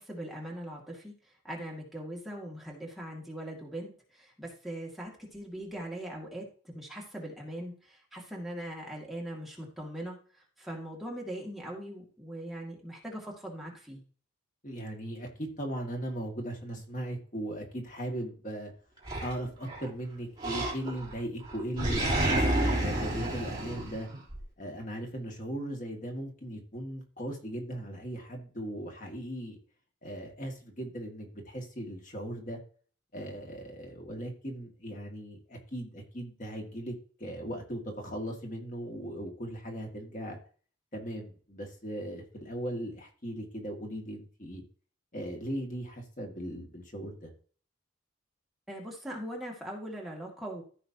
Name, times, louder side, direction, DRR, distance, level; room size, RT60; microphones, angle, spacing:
voice 1, 0.0-10.2 10.6-14.0 48.7-50.6, right 1 dB, ahead, -2 dB, 2.0 m, -41 dB
voice 2, 14.6-18.7 19.2-22.5 22.8-24.1 24.6-29.6 30.0-32.6 33.1-36.9 37.2-40.4 40.9-44.6 45.1-47.3, right 1 dB, 40° left, 1 dB, 2.0 m, -38 dB
Animal, 19.0-19.9 20.4-21.2 21.4-24.4, right 1 dB, 20° right, 3.2 m, -30 dB
14.5 x 5.7 x 2.8 m, 0.42 s
head